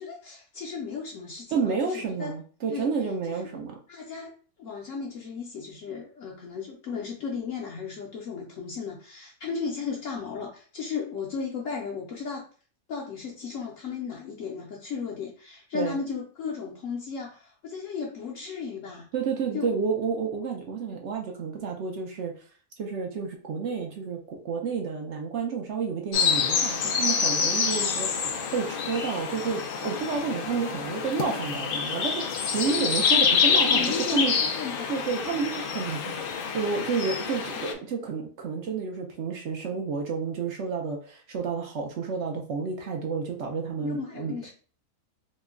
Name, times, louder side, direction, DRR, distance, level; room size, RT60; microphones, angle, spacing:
voice 1, 0.0-2.3 2.7-2.9 3.3-3.5 3.9-4.3 4.6-12.5 12.9-19.1 19.5-19.7 32.7-32.9 33.5-34.9 43.8-44.5, left 5 dB, 65° left, -3 dB, 0.9 m, -35 dB
voice 2, 1.5-3.8 15.7-16.0 19.1-22.3 22.8-28.2 28.5-34.3 34.9-44.3, right 5 dB, 65° right, 2 dB, 0.8 m, -30 dB
sound 1, 26.1-37.7, left 6 dB, 85° left, 0.4 m, -27 dB
3.0 x 2.1 x 3.5 m, 0.41 s
omnidirectional pair, 1.5 m